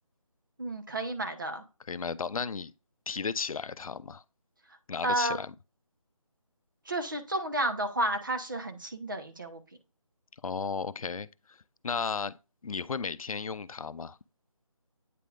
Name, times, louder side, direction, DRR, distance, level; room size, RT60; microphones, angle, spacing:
voice 1, 0.6-1.6 5.0-5.4 6.8-9.6, right 1 dB, 35° right, 0.8 m, -31 dB
voice 2, 1.9-2.7 3.1-4.2 4.9-5.5 10.4-12.4 12.6-14.2, left 5 dB, 85° left, 0.5 m, -34 dB
8.4 x 5.0 x 2.4 m
figure-of-eight pair, 180°, 18 cm